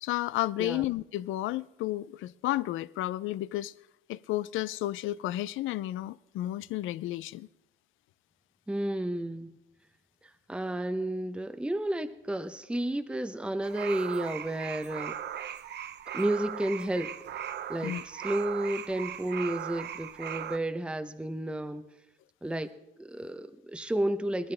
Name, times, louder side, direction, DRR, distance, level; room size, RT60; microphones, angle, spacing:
voice 1, 0.0-3.7 4.1-7.5 17.8-18.0, left 15 dB, 85° left, 0.4 m, -32 dB
voice 2, 8.7-9.6 10.5-15.2 16.1-17.1 17.7-21.8 22.4-22.7 23.0-24.5, right 1 dB, 5° right, 0.7 m, -32 dB
sound 1, 13.6-20.6, right 10 dB, 60° right, 0.7 m, -38 dB
19.0 x 13.5 x 3.4 m
cardioid pair, 90°, 20 cm